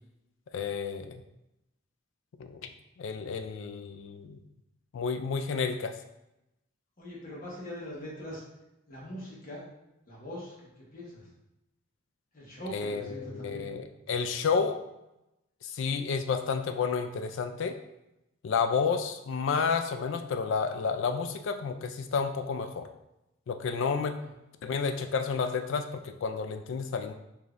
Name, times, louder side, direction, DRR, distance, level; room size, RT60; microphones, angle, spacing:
voice 1, 0.5-1.2 2.4-2.7 3.0-4.4 4.9-5.9 12.7-14.8 15.6-17.8 18.4-22.9 23.5-24.2 24.6-27.1, left 5 dB, 60° left, 8 dB, 0.3 m, -30 dB
voice 2, 7.0-8.4 8.9-9.6 10.1-11.3 12.3-13.7 24.2-24.3, equal, 40° left, -5 dB, 1.1 m, -42 dB
4.9 x 2.7 x 2.5 m, 0.91 s
head